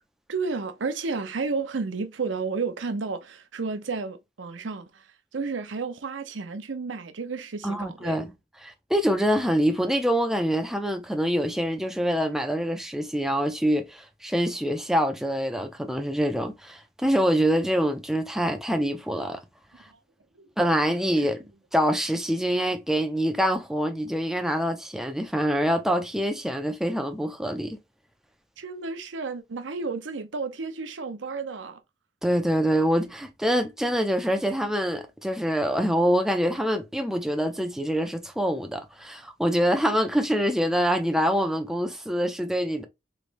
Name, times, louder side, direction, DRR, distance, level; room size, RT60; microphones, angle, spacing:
voice 1, 0.3-8.2 20.3-20.5 21.2-21.3 28.6-31.8, right 4 dB, 90° right, 0.7 m, -32 dB
voice 2, 7.6-8.3 8.6-19.4 19.8-19.9 20.6-21.4 21.7-27.8 32.2-42.8, equal, ahead, 0.5 m, -25 dB
3.3 x 3.2 x 2.5 m
head